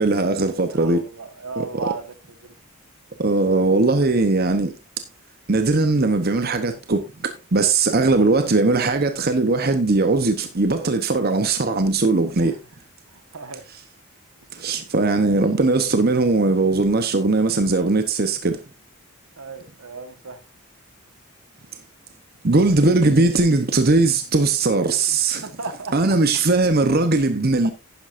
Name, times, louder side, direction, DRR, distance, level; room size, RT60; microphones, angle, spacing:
voice 1, 0.0-1.0 1.6-1.7 3.2-4.7 5.5-12.6 14.5-18.6 22.4-25.4 25.9-27.7, right 3 dB, 45° right, 0.9 m, -19 dB
voice 2, 0.7-2.1 2.4-2.5 8.1-8.2 12.4-12.6 13.1-13.6 15.3-15.4 19.4-20.4 25.1-25.2 25.4-26.2, right 4 dB, 80° right, 1.4 m, -35 dB
11.5 x 10.0 x 2.6 m
head